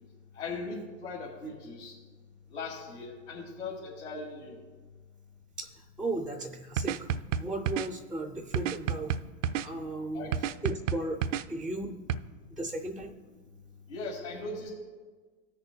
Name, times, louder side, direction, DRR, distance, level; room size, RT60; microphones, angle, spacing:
voice 1, 0.3-1.9 2.5-4.6 10.1-10.5 13.9-14.7, left 3 dB, 90° left, -7 dB, 2.4 m, -39 dB
voice 2, 6.0-7.1 7.4-9.1 9.6-10.3 10.6-11.2 11.5-11.9 12.6-13.1, right 2 dB, ahead, 3 dB, 0.3 m, -35 dB
sound 1, 6.8-7.9 8.5-9.7 10.3-11.4 12.1-12.2, right 8 dB, 90° right, 0.5 m, -30 dB
19.0 x 6.7 x 2.3 m, 1.4 s
hypercardioid pair, 115°, 36 cm